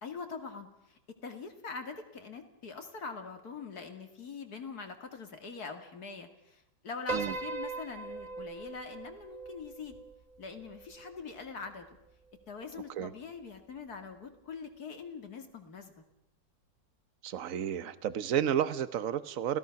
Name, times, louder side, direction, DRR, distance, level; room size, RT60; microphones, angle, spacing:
voice 1, 0.0-10.0 10.4-11.9 12.5-16.0, left 5 dB, 55° left, 6 dB, 2.6 m, -43 dB
Piano, 7.1-11.5, right 4 dB, 25° right, 1.2 m, -40 dB
voice 2, 17.2-19.6, right 9 dB, 50° right, 14 dB, 1.2 m, -31 dB
28.5 x 17.0 x 5.9 m, 0.88 s
omnidirectional pair, 2.0 m